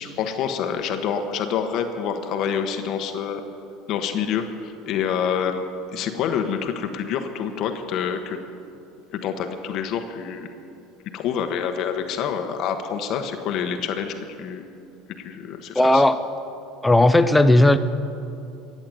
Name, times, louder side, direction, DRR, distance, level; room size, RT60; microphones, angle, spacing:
voice 1, 0.0-3.4 3.9-8.4 9.1-10.5 11.1-14.7 15.2-16.0, left 7 dB, 55° left, 6 dB, 1.1 m, -27 dB
voice 2, 15.7-16.2 16.8-17.8, left 1 dB, 10° left, 10 dB, 0.7 m, -15 dB
14.5 x 8.8 x 7.8 m, 2.7 s
hypercardioid pair, 90°, 0 cm